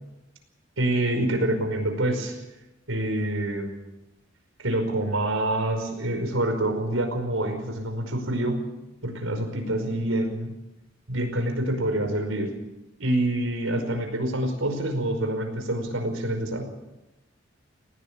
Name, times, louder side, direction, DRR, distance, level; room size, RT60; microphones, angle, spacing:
voice 1, 0.8-2.4 2.9-3.7 4.6-8.6 9.0-10.6 11.1-12.5 13.0-16.7, right 1 dB, 90° right, 5 dB, 5.2 m, -26 dB
20.0 x 17.5 x 8.7 m, 0.98 s
head